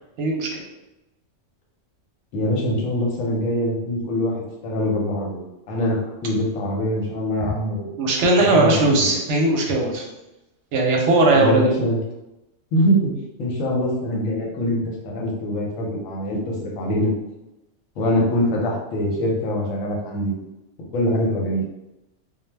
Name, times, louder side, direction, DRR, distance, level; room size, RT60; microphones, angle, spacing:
voice 1, 0.2-0.6 7.4-7.5 8.0-10.1 10.7-11.7, right 2 dB, 65° right, 0 dB, 0.8 m, -18 dB
voice 2, 2.3-7.9 8.4-8.7 9.1-9.2 11.3-12.0 12.7-13.1 13.4-17.1 18.0-20.3 20.9-21.6, equal, 80° left, -2 dB, 1.0 m, -23 dB
2.3 x 2.0 x 3.2 m, 0.98 s
omnidirectional pair, 1.4 m